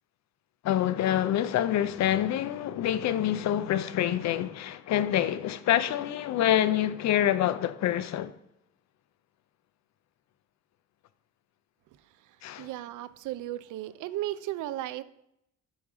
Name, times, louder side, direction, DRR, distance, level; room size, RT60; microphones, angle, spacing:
voice 1, 0.6-8.3 12.4-12.7, left 11 dB, 65° left, 0.5 m, -26 dB
voice 2, 12.6-15.0, right 14 dB, 80° right, 0.4 m, -35 dB
7.1 x 4.8 x 3.7 m
cardioid pair, 90°, 30 cm